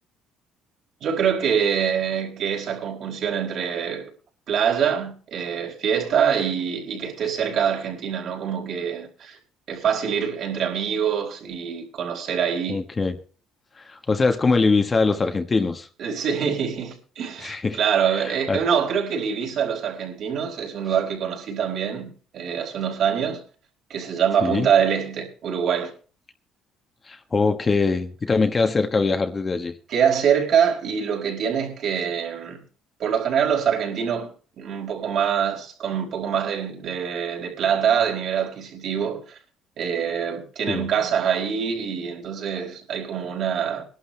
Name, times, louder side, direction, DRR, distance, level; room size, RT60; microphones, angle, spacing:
voice 1, 1.0-4.1 4.5-9.4 9.7-12.8 16.0-23.4 23.9-25.9 29.9-32.6 33.0-34.3 34.6-39.4 39.8-43.8, right 7 dB, 55° right, 4.8 m, -24 dB
voice 2, 12.7-13.2 13.8-15.9 17.4-17.8 18.1-18.6 24.4-24.7 27.1-29.7 40.7-40.9, left 4 dB, 25° left, 1.3 m, -22 dB
21.5 x 11.5 x 3.3 m
cardioid pair, 125°, 0 cm